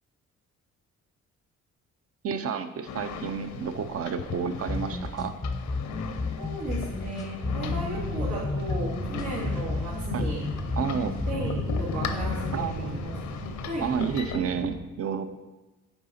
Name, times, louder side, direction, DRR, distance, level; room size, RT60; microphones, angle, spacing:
voice 1, 2.2-5.3 10.1-10.3 10.8-11.2 12.5-13.0 13.8-15.3, right 7 dB, 50° right, 10 dB, 0.6 m, -30 dB
sound 1, 2.9-14.4, left 6 dB, 75° left, 0.7 m, -38 dB
sound 2, 4.7-12.7, left 3 dB, 15° left, 0.5 m, -32 dB
voice 2, 6.4-10.4 11.3-13.2 13.7-13.8, right 1 dB, 90° right, -9 dB, 2.0 m, -35 dB
sound 3, 7.4-14.7, right 1 dB, 70° right, 1.9 m, -37 dB
8.0 x 4.8 x 4.2 m, 1.2 s
cardioid pair, 90°, 30 cm